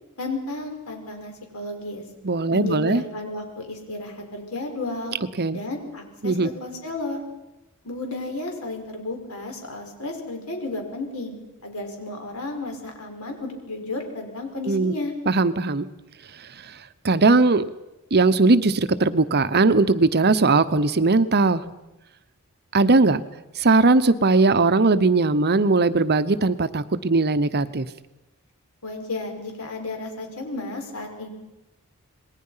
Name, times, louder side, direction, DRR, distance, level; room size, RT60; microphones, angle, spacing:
voice 1, 0.2-2.0 2.5-5.2 5.5-7.2 7.8-11.4 11.6-15.1 28.8-31.3, left 2 dB, 75° left, 3 dB, 5.3 m, -33 dB
voice 2, 2.2-3.0 5.4-5.6 6.2-6.5 14.7-14.9 15.3-15.9 17.0-17.6 18.1-21.6 22.7-23.2 23.6-27.9, right 3 dB, 50° right, 13 dB, 0.9 m, -19 dB
27.5 x 20.5 x 5.7 m, 0.97 s
head